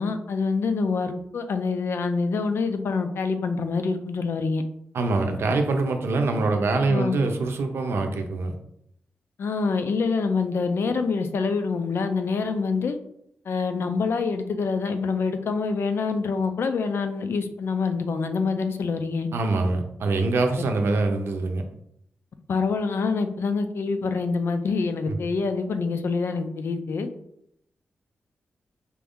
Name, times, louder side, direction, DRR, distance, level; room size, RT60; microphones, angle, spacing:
voice 1, 0.0-4.6 6.9-7.2 9.4-13.0 13.5-19.3 22.5-27.1, left 4 dB, 65° left, 8 dB, 0.4 m, -26 dB
voice 2, 4.9-8.5 19.3-21.6 25.1-25.2, right 3 dB, 70° right, 5 dB, 0.6 m, -24 dB
4.5 x 2.6 x 3.5 m, 0.74 s
wide cardioid pair, 150°, 4 cm